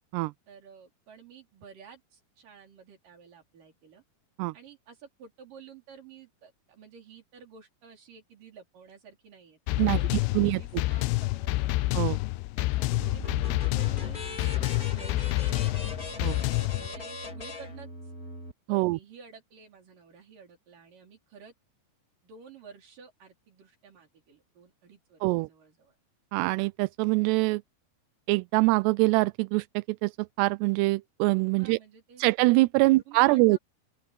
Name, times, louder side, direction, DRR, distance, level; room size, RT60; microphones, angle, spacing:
voice 1, 0.5-4.0 4.5-11.7 12.6-15.7 16.6-18.1 18.7-21.5 22.2-26.0 31.6-32.2 32.8-33.6, right 6 dB, 50° right, 5.5 m, -52 dB
sound 1, 9.7-16.9, left 20 dB, 85° left, 2.3 m, -28 dB
voice 2, 9.8-10.6 11.9-12.2 16.2-16.4 18.7-19.0 25.2-25.5 26.3-27.6 28.3-31.8 32.2-33.6, right 23 dB, 85° right, 2.5 m, -24 dB
sound 2, 12.9-18.5, left 2 dB, 25° left, 2.7 m, -40 dB
open air
omnidirectional pair, 5.2 m